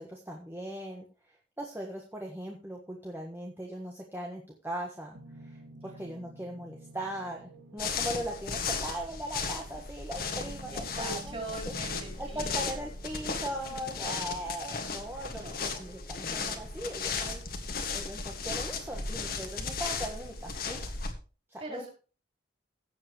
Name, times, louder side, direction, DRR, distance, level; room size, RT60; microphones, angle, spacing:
voice 1, 0.0-5.2 5.4-11.3 12.2-20.8 21.5-21.9, right 1 dB, 10° right, 0 dB, 1.4 m, -39 dB
sound 1, 5.1-20.8, right 1 dB, 85° right, 2.4 m, -53 dB
sound 2, 7.8-21.1, left 4 dB, 50° left, 1.8 m, -36 dB
voice 2, 10.7-12.9 13.6-13.9 15.3-15.6 21.6-21.9, right 2 dB, 30° right, 0 dB, 5.0 m, -42 dB
16.5 x 7.7 x 3.1 m, 0.35 s
head